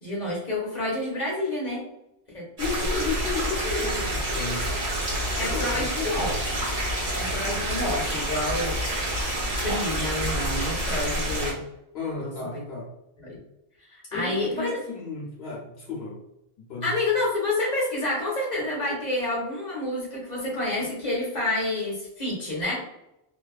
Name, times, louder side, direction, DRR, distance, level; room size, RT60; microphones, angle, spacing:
voice 1, 0.0-1.9 2.3-2.5 5.4-6.4 7.2-8.8 9.6-11.6 12.1-12.6 13.2-13.4 13.9-14.8 16.8-22.7, left 1 dB, 45° left, -5 dB, 0.9 m, -29 dB
voice 2, 2.6-4.8 5.3-6.3 11.9-12.9 14.1-16.2 16.6-16.9, left 4 dB, 80° left, -4 dB, 0.9 m, -33 dB
sound 1, 2.6-11.5, right 1 dB, 60° right, 1.4 m, -28 dB
2.5 x 2.3 x 2.3 m, 0.88 s
omnidirectional pair, 1.0 m